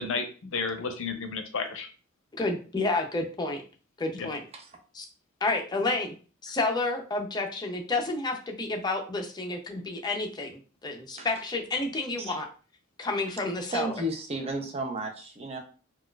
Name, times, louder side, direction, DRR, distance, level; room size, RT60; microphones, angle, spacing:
voice 1, 0.0-1.9 4.1-4.3, left 4 dB, 65° left, 7 dB, 0.6 m, -32 dB
voice 2, 2.3-3.6 4.0-4.4 4.9-5.0 5.4-6.2 6.4-12.5 13.0-13.9, left 2 dB, 20° left, 2 dB, 0.5 m, -30 dB
voice 3, 13.7-15.6, right 1 dB, 30° right, 3 dB, 0.6 m, -33 dB
4.1 x 2.4 x 2.3 m, 0.37 s
head